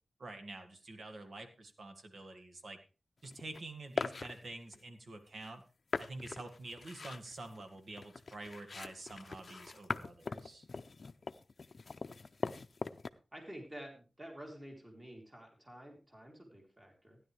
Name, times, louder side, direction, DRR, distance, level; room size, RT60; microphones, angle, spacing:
voice 1, 0.2-2.8 3.2-5.6 6.0-10.7, right 2 dB, 70° right, 6 dB, 2.0 m, -48 dB
sound 1, 3.2-3.6 4.0-4.8 5.4-5.5 5.9-13.1, left 4 dB, 50° left, 0.6 m, -41 dB
voice 2, 13.3-17.2, equal, 20° right, 0 dB, 3.4 m, -50 dB
15.5 x 10.5 x 3.4 m, 0.32 s
wide cardioid pair, 110°, 0 cm